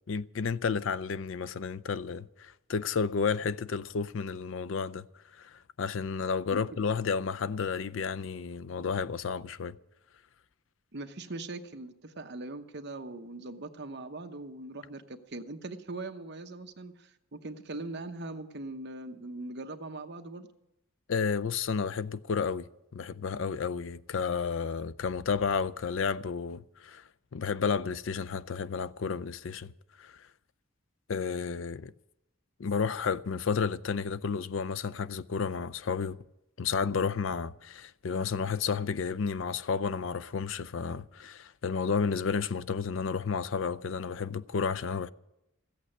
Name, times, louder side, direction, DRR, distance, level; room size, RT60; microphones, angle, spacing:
voice 1, 0.1-5.0 5.4-9.8 21.1-27.0 27.3-29.7 30.0-30.2 31.1-31.9 32.6-36.2 36.6-45.1, left 5 dB, 65° left, 0.5 m, -31 dB
voice 2, 10.9-20.5, right 2 dB, 55° right, 0.9 m, -41 dB
14.5 x 8.5 x 9.8 m
head